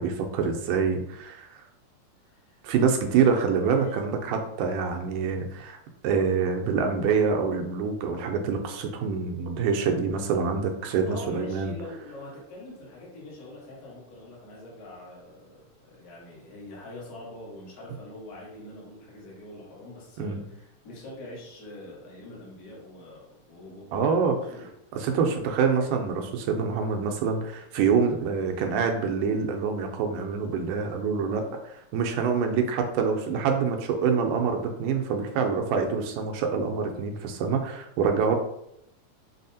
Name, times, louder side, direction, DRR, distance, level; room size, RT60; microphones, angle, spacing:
voice 1, 0.0-1.6 2.6-5.8 6.0-11.7 20.2-20.4 23.9-24.3 24.9-38.3, right 5 dB, 85° right, 4 dB, 2.1 m, -26 dB
voice 2, 11.0-24.7, left 1 dB, 90° left, -6 dB, 0.8 m, -43 dB
5.7 x 2.0 x 2.7 m, 0.80 s
omnidirectional pair, 3.6 m